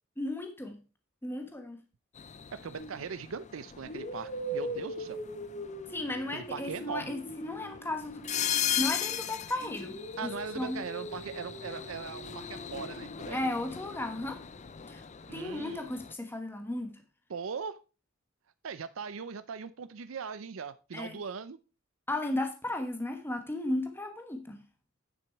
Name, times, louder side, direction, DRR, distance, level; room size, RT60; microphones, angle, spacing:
voice 1, 0.2-0.8 1.2-1.8 5.9-8.2 8.8-10.8 13.3-14.4 14.9-15.0 15.3-17.0 20.9-21.2 22.1-24.6, left 1 dB, 10° left, 5 dB, 1.2 m, -35 dB
sound 1, 2.1-16.1, left 9 dB, 35° left, 0.5 m, -39 dB
voice 2, 2.5-5.2 6.3-7.2 10.2-13.4 15.3-15.9 17.3-17.8 18.6-21.6, right 6 dB, 90° right, 14 dB, 0.5 m, -40 dB
sound 2, 2.8-3.0 3.8-9.2 9.6-13.5, equal, 50° left, 3.3 m, -42 dB
9.7 x 7.0 x 4.5 m, 0.33 s
head